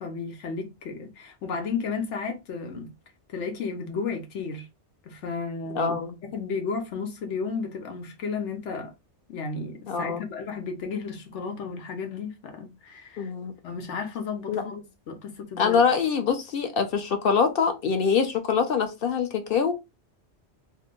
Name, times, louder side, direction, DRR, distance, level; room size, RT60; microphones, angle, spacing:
voice 1, 0.0-2.9 3.3-4.7 5.0-6.0 6.3-8.9 9.3-13.3 13.6-15.8, left 5 dB, 85° left, 1.2 m, -33 dB
voice 2, 5.8-6.2 9.9-10.2 13.2-13.9 14.5-14.7 15.6-19.7, left 6 dB, 60° left, 0.8 m, -24 dB
2.7 x 2.5 x 3.6 m
omnidirectional pair, 1.2 m